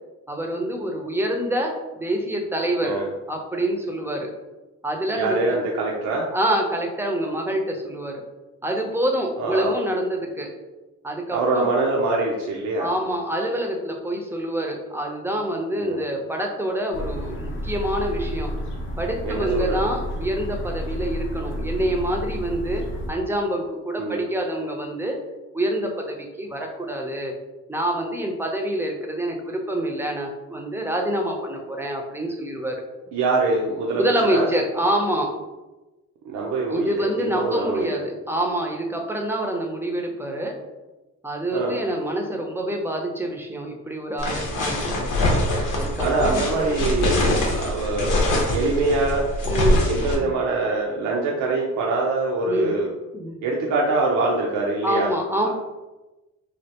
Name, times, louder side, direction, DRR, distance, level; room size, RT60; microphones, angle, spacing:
voice 1, 0.3-2.9 3.3-4.3 4.8-5.6 6.3-8.2 8.6-10.5 11.0-11.7 12.8-18.5 19.0-22.8 23.1-25.2 25.5-27.3 27.7-32.8 34.0-35.3 36.7-40.5 41.2-45.2 45.7-46.5 46.9-47.2 49.5-49.9 50.2-50.3 52.5-52.7 53.1-53.4 54.8-55.5, right 1 dB, 10° right, 1 dB, 0.5 m, -26 dB
voice 2, 5.1-6.3 9.4-9.7 11.3-12.9 15.8-16.0 19.2-19.9 24.0-24.2 33.1-34.5 36.3-38.0 41.5-41.8 46.0-49.3 49.8-52.9 53.4-55.1 55.4-55.5, right 3 dB, 75° right, -2 dB, 0.6 m, -24 dB
sound 1, 16.9-23.1, equal, 40° left, 0.6 m, -30 dB
sound 2, 44.2-50.1, left 1 dB, 90° left, 0.8 m, -23 dB
3.3 x 2.4 x 2.8 m, 1.1 s
cardioid pair, 90°, 30 cm